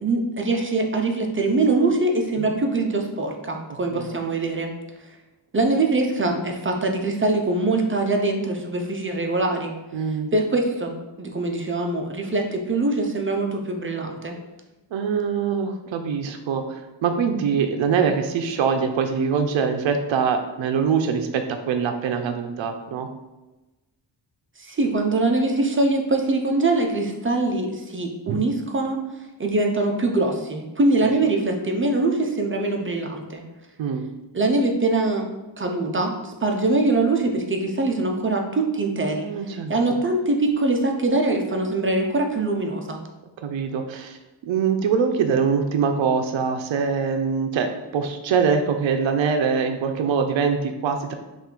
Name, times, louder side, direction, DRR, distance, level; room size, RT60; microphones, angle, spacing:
voice 1, 0.0-4.7 5.5-9.7 10.3-14.4 24.6-29.0 29.4-33.4 34.3-35.2 35.6-39.3 39.7-43.0, right 2 dB, 30° right, 2 dB, 0.4 m, -23 dB
voice 2, 3.7-4.1 9.9-10.3 14.9-23.1 28.3-28.4 31.0-31.2 33.8-34.1 39.1-40.0 43.4-44.2 44.4-51.1, right 6 dB, 80° right, 6 dB, 0.5 m, -24 dB
5.6 x 2.5 x 3.7 m, 1.1 s
wide cardioid pair, 170°, 45 cm